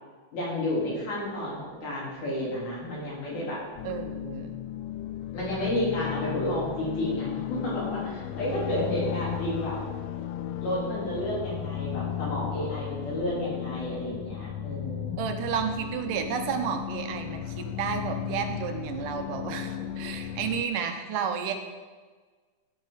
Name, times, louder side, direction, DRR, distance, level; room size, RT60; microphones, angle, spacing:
voice 1, 0.3-3.6 5.3-9.8 10.6-15.2, left 1 dB, 70° left, -6 dB, 5.2 m, -31 dB
sound 1, 3.8-20.6, left 11 dB, 90° left, 1.5 m, -35 dB
voice 2, 3.8-4.6 15.2-21.5, right 7 dB, 80° right, 6 dB, 2.5 m, -31 dB
15.5 x 9.4 x 4.0 m, 1.4 s
omnidirectional pair, 3.7 m